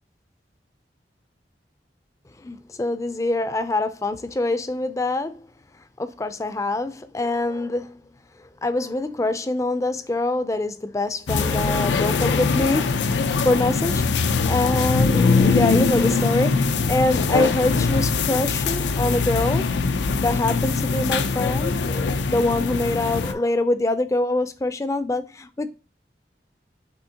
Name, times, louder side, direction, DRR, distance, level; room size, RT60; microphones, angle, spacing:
voice 1, 2.4-5.5 6.0-8.0 8.4-13.1 13.4-14.0 14.4-19.7 20.2-25.7, left 2 dB, 20° left, 0.4 m, -24 dB
sound 1, 11.3-23.3, left 4 dB, 85° left, 0.5 m, -22 dB
6.3 x 2.9 x 2.8 m
head